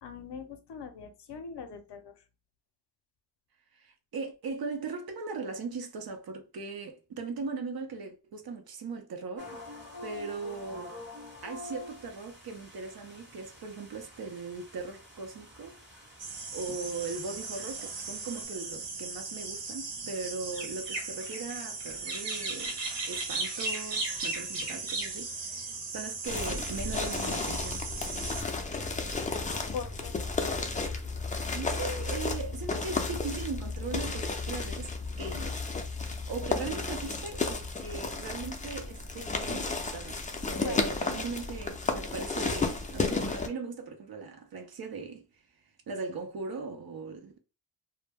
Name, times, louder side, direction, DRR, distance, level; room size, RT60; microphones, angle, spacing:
voice 1, 0.0-2.1 29.7-30.2 40.6-40.8, left 6 dB, 70° left, 0.6 m, -41 dB
voice 2, 3.7-9.6 10.0-11.0 11.4-15.8 16.5-22.8 23.1-27.8 31.5-34.9 35.2-35.6 36.3-45.3 45.9-47.4, right 4 dB, 55° right, 0.6 m, -39 dB
sound 1, 9.4-18.4, left 2 dB, 25° right, 0.8 m, -48 dB
sound 2, 16.2-28.4, right 3 dB, 80° right, 0.9 m, -37 dB
sound 3, 26.2-43.5, left 3 dB, 20° left, 0.4 m, -33 dB
2.2 x 2.0 x 3.2 m
wide cardioid pair, 90°, 43 cm